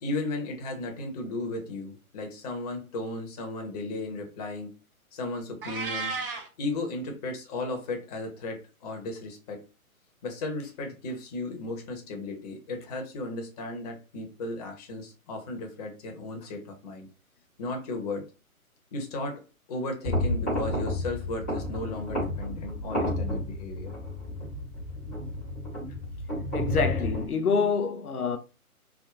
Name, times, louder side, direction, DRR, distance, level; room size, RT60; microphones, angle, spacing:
voice 1, 0.0-4.7 5.1-6.2 6.6-9.6 10.2-17.1 17.6-18.3 18.9-19.4 19.7-23.9, left 2 dB, 25° left, 0.9 m, -35 dB
Meow, 5.6-6.5, right 3 dB, 40° right, 0.8 m, -33 dB
sound 1, 20.0-27.2, left 1 dB, 5° left, 0.4 m, -31 dB
voice 2, 26.5-28.4, left 5 dB, 90° left, 0.6 m, -26 dB
3.6 x 2.2 x 3.5 m
figure-of-eight pair, 130°, 43 cm